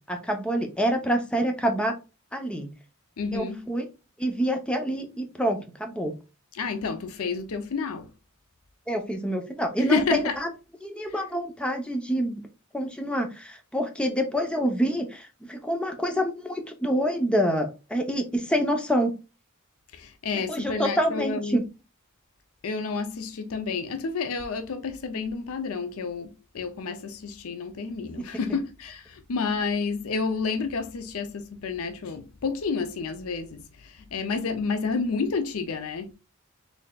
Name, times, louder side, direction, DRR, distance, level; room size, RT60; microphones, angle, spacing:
voice 1, 0.1-1.9 2.3-2.7 3.3-3.8 4.2-6.1 8.9-10.5 10.8-12.4 12.7-19.1 20.5-21.6, equal, 5° left, 0.6 m, -27 dB
voice 2, 3.2-3.7 6.5-8.1 9.8-10.4 11.1-11.2 19.9-21.6 22.6-36.1, left 4 dB, 75° left, 0.5 m, -30 dB
3.9 x 3.3 x 2.3 m
head